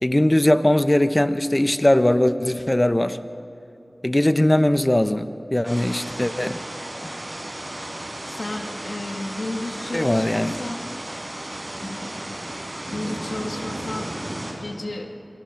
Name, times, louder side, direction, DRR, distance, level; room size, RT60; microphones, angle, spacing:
voice 1, 0.0-3.2 4.0-6.6 9.9-10.6 11.8-11.9, left 1 dB, 25° left, 10 dB, 0.8 m, -20 dB
sound 1, 5.6-14.5, right 1 dB, 45° right, 5.2 m, -34 dB
voice 2, 8.3-10.8 11.8-12.4 12.9-14.1 14.5-15.1, left 2 dB, 80° left, 3 dB, 1.4 m, -33 dB
28.5 x 25.0 x 3.8 m, 2.8 s
wide cardioid pair, 45°, 0 cm